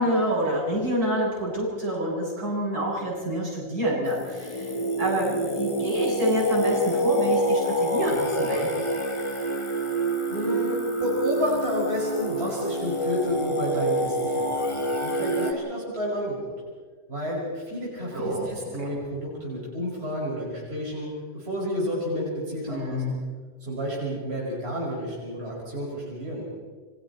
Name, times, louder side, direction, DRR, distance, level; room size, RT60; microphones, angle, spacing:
voice 1, 0.0-4.7 5.0-8.7 18.1-18.5 18.9-19.0 22.7-23.2, equal, 55° right, -6 dB, 8.5 m, -27 dB
Singing, 4.1-15.5, equal, 20° left, 1.1 m, -27 dB
voice 2, 10.3-16.5 17.1-21.1 21.3-23.0 23.6-26.4, equal, 30° right, -6 dB, 6.4 m, -30 dB
28.5 x 24.5 x 4.3 m, 1.5 s
omnidirectional pair, 2.0 m